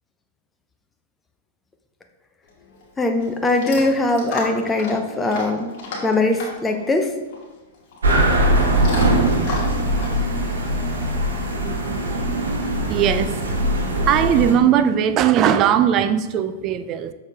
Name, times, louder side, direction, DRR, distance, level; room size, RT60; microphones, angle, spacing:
Chewing mastication / Dog, 2.4-11.6, left 2 dB, 55° left, 2.0 m, -35 dB
voice 1, 3.0-5.7 6.0-7.1, left 2 dB, 15° left, 4 dB, 0.7 m, -21 dB
sound 1, 8.0-14.5, right 1 dB, 85° right, 1.4 m, -21 dB
voice 2, 12.8-13.6 14.0-17.1, right 9 dB, 35° right, 11 dB, 0.4 m, -19 dB
6.5 x 4.4 x 3.6 m, 1.2 s
hypercardioid pair, 115°, 0 cm